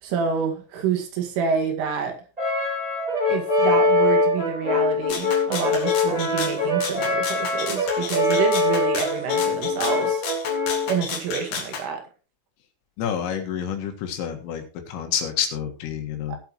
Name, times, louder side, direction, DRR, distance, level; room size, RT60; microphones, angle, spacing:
voice 1, 0.0-2.2 3.3-10.3 10.9-12.0 16.3-16.4, right 6 dB, 75° right, 4 dB, 4.5 m, -27 dB
Brass instrument, 2.4-10.9, left 3 dB, 10° right, 3.1 m, -23 dB
Rattle (instrument), 5.1-11.8, left 5 dB, 55° left, 2.8 m, -32 dB
voice 2, 13.0-14.6 14.9-16.4, left 9 dB, 80° left, 5 dB, 4.2 m, -28 dB
18.5 x 8.0 x 3.1 m, 0.34 s
omnidirectional pair, 5.8 m